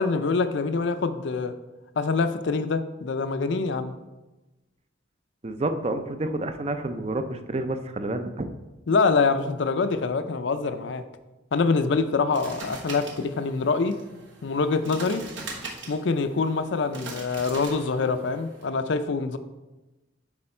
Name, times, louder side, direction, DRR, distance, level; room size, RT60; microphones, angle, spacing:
voice 1, 0.0-1.5 2.0-3.9 8.9-11.0 11.5-13.9 14.4-15.2 15.9-19.4, left 4 dB, 65° left, 10 dB, 0.5 m, -25 dB
voice 2, 5.4-8.5, right 2 dB, 30° right, 8 dB, 0.5 m, -29 dB
sound 1, 12.3-18.6, right 3 dB, 70° right, 1.3 m, -41 dB
8.5 x 4.5 x 4.4 m, 1.1 s
head